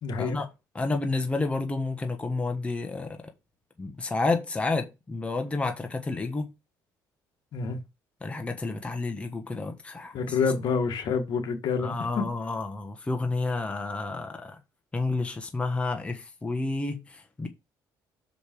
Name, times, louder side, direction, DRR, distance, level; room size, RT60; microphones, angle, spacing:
voice 1, 0.0-0.4 7.5-7.8 10.1-12.2, left 5 dB, 60° left, 2.0 m, -27 dB
voice 2, 0.7-3.2 3.8-6.5 8.2-10.1 11.8-14.6 14.9-17.5, left 3 dB, 15° left, 1.2 m, -30 dB
6.5 x 5.2 x 4.6 m
cardioid pair, 115°, 8 cm